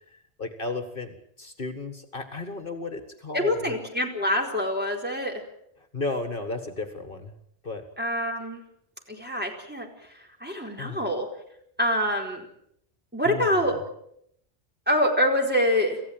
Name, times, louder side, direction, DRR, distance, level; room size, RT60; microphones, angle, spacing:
voice 1, 0.1-3.7 5.9-7.3 7.6-7.9 10.8-11.0 13.3-13.6, left 3 dB, 55° left, 8 dB, 2.0 m, -34 dB
voice 2, 3.3-5.4 8.0-8.6 9.1-11.3 11.8-12.5 13.1-13.8 14.9-16.0, equal, 10° right, 0 dB, 4.6 m, -25 dB
27.5 x 15.0 x 9.1 m, 0.74 s
omnidirectional pair, 1.1 m